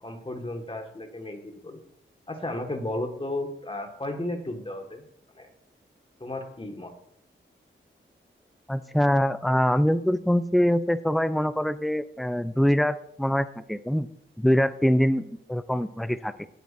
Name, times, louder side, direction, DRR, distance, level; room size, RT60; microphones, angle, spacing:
voice 1, 0.0-1.8 2.3-5.0 5.4-5.5 6.2-6.9, left 1 dB, 25° left, 3 dB, 1.8 m, -34 dB
voice 2, 8.7-14.1 14.4-16.5, equal, ahead, 13 dB, 0.5 m, -24 dB
16.5 x 8.4 x 2.7 m, 0.73 s
cardioid pair, 60°, 21 cm